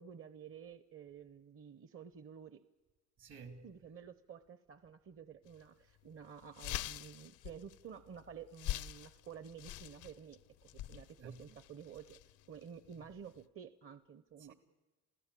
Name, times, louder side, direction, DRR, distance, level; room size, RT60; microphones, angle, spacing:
voice 1, 0.0-2.6 3.6-10.4 10.9-14.5, right 7 dB, 45° right, 0.9 m, -52 dB
voice 2, 3.2-3.7 11.2-11.6 12.9-13.1 14.4-14.5, right 4 dB, 70° right, 3.1 m, -53 dB
sound 1, 5.5-5.6 6.0-6.1 6.4-13.4, left 13 dB, 85° left, 0.7 m, -45 dB
28.5 x 16.5 x 8.4 m
cardioid pair, 90°, 30 cm